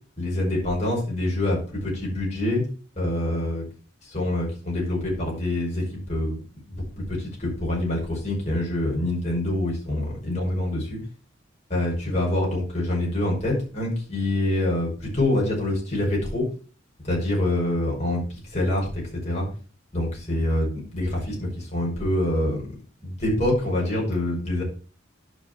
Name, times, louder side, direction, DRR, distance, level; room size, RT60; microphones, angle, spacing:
voice 1, 0.2-2.6 3.0-3.7 4.0-6.4 6.7-11.0 11.7-16.5 17.0-18.2 18.5-19.5 19.9-22.6 23.0-24.6, left 1 dB, 35° left, -3 dB, 5.5 m, -25 dB
11.5 x 5.5 x 4.7 m, 0.37 s
head